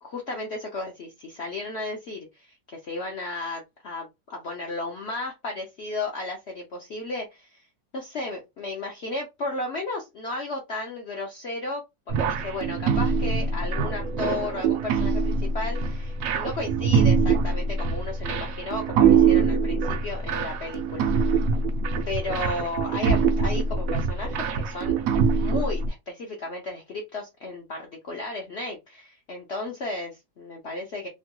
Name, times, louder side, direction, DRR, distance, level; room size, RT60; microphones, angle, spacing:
voice 1, 0.0-2.5 2.7-7.6 7.9-21.4 22.1-24.9 25.4-31.1, left 2 dB, 65° left, 0.6 m, -34 dB
sound 1, 12.1-25.9, right 5 dB, 75° right, 0.8 m, -24 dB
3.0 x 2.2 x 2.9 m
omnidirectional pair, 1.9 m